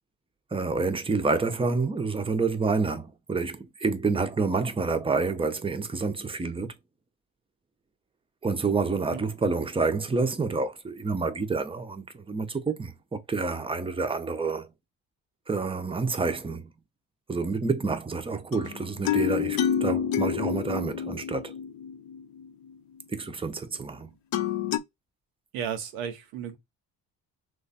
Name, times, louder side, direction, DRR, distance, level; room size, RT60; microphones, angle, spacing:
voice 1, 0.5-6.7 8.4-14.7 15.5-16.7 17.3-21.5 23.1-24.1, right 4 dB, 10° right, 0.7 m, -28 dB
sound 1, 18.5-22.5 24.3-24.8, left 9 dB, 50° left, 0.7 m, -28 dB
voice 2, 25.5-26.6, right 8 dB, 85° right, 0.8 m, -33 dB
3.2 x 2.2 x 4.0 m
hypercardioid pair, 50°, 46 cm